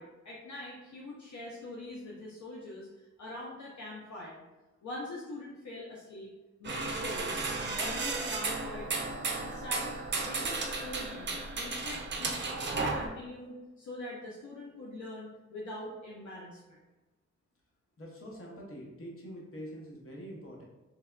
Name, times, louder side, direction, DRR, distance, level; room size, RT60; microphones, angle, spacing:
voice 1, 0.0-2.9 3.2-4.4 4.8-6.3 6.6-16.8, left 1 dB, 75° left, -4 dB, 0.6 m, -43 dB
sound 1, 6.6-13.1, right 3 dB, 40° right, 0.5 m, -34 dB
voice 2, 18.0-20.7, equal, 50° left, -2 dB, 0.9 m, -45 dB
3.3 x 2.1 x 2.3 m, 1.1 s
cardioid pair, 50°, 29 cm